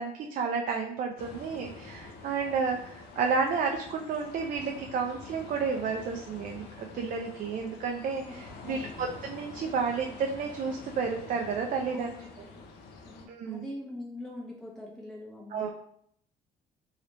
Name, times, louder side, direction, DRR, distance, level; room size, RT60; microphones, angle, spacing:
voice 1, 0.0-12.1 13.3-13.6 15.5-15.7, right 5 dB, 50° right, 2 dB, 0.4 m, -31 dB
sound 1, 1.2-13.3, left 4 dB, 80° left, 0.6 m, -47 dB
voice 2, 8.6-9.0 11.9-12.6 13.0-15.7, left 1 dB, ahead, -4 dB, 0.7 m, -43 dB
3.2 x 2.8 x 2.9 m, 0.69 s
cardioid pair, 110°, 17 cm